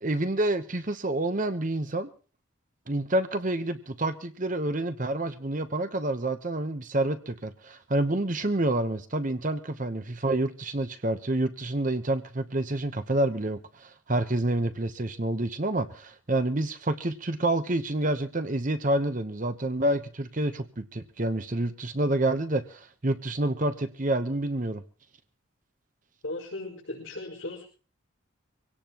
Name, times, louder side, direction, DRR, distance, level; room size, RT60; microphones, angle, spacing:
voice 1, 0.0-2.1 2.9-24.8, right 1 dB, 40° right, 10 dB, 0.9 m, -28 dB
voice 2, 26.2-27.6, left 2 dB, 65° left, -4 dB, 5.0 m, -37 dB
24.5 x 17.5 x 3.0 m, 0.38 s
head